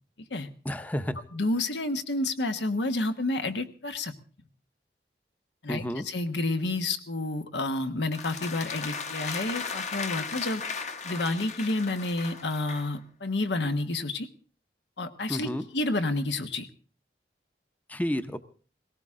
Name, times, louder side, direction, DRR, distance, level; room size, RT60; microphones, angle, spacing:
voice 1, 0.6-1.2 5.7-6.0 15.3-15.6 17.9-18.4, equal, 10° left, 11 dB, 0.6 m, -31 dB
voice 2, 1.3-4.1 5.6-10.6 11.0-14.3 15.0-16.7, left 2 dB, 85° left, 8 dB, 1.3 m, -30 dB
sound 1, 8.1-12.9, left 5 dB, 40° left, 1.0 m, -36 dB
18.5 x 17.5 x 3.7 m, 0.38 s
head